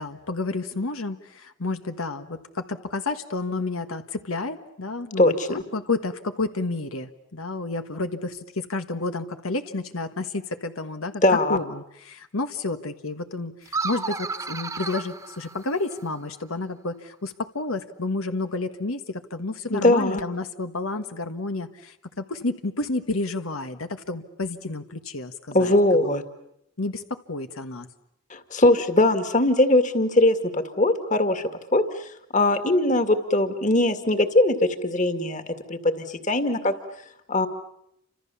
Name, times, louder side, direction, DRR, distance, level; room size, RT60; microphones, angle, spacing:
voice 1, 0.0-11.2 11.5-25.7 26.0-26.1 26.8-27.9, left 3 dB, 85° left, 8 dB, 1.5 m, -30 dB
voice 2, 5.2-5.6 11.2-11.6 19.7-20.2 25.5-26.2 28.3-31.4 31.7-32.1 32.3-35.4 35.7-36.7 37.3-37.5, left 1 dB, 35° left, 9 dB, 2.2 m, -21 dB
sound 1, 13.7-16.2, right 4 dB, 15° right, 1.4 m, -32 dB
29.5 x 26.5 x 7.1 m, 0.77 s
head